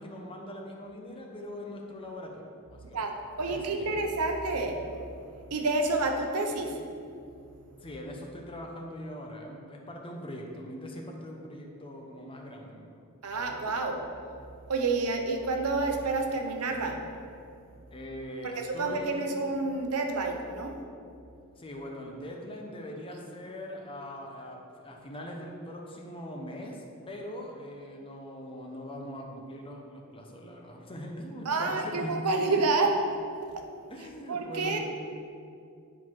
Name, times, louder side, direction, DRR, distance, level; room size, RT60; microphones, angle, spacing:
voice 1, 0.0-3.1 3.4-3.9 7.8-13.0 17.9-19.2 21.6-32.5 33.9-34.8, equal, 25° left, 1 dB, 0.8 m, -41 dB
voice 2, 2.9-6.8 13.2-14.0 14.7-17.0 18.4-20.8 31.4-33.0 33.5-33.6 34.3-34.8, right 3 dB, 85° right, 4 dB, 0.8 m, -29 dB
9.7 x 4.0 x 4.6 m, 2.5 s
head